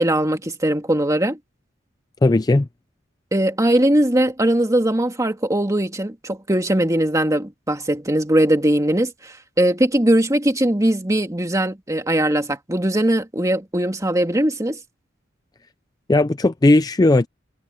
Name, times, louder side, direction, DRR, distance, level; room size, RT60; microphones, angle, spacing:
voice 1, 0.0-1.4 3.3-14.8, right 1 dB, 15° right, 2.3 m, -20 dB
voice 2, 2.2-2.7 16.1-17.3, left 2 dB, 20° left, 0.4 m, -16 dB
head